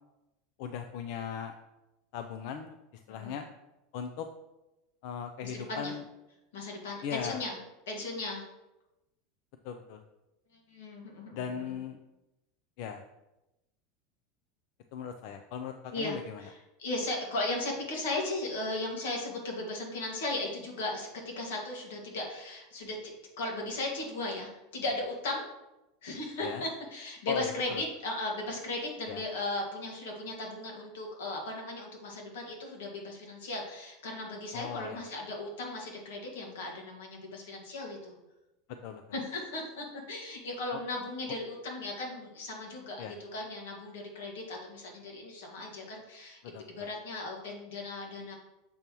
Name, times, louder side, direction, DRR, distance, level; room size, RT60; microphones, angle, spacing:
voice 1, 0.6-1.5 2.1-2.8 3.1-3.4 3.9-4.3 5.0-6.0 7.0-7.4 9.6-10.0 11.3-12.0 12.8-13.0 14.9-16.4 26.4-26.6 27.3-27.8 29.1-29.2 34.5-35.0 38.8-39.0 43.0-43.1 46.4-46.6, left 8 dB, 60° left, 7 dB, 0.4 m, -38 dB
voice 2, 5.4-6.0 6.5-7.6 7.9-8.4 10.7-11.8 15.9-23.0 23.4-25.4 26.0-38.1 39.1-48.4, left 2 dB, 85° left, 0 dB, 1.8 m, -37 dB
6.9 x 3.0 x 5.3 m, 0.96 s
supercardioid pair, 135°, 0 cm